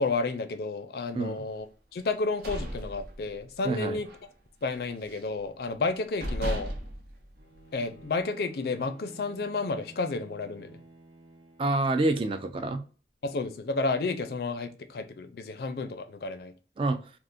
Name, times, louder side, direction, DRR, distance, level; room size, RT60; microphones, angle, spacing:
voice 1, 0.0-1.7 1.9-4.1 4.6-6.7 7.7-10.8 13.2-16.5, left 3 dB, 60° left, 0.4 m, -31 dB
voice 2, 1.1-1.4 3.6-4.0 11.6-12.8 16.8-17.0, right 2 dB, 30° right, 0.3 m, -27 dB
sound 1, 2.1-3.7 4.0-4.3 4.6-5.4 5.8-5.9 6.2-8.0, right 1 dB, 60° right, 0.7 m, -36 dB
Bowed string instrument, 7.4-12.2, right 2 dB, 80° right, 1.0 m, -53 dB
3.6 x 2.4 x 2.5 m
head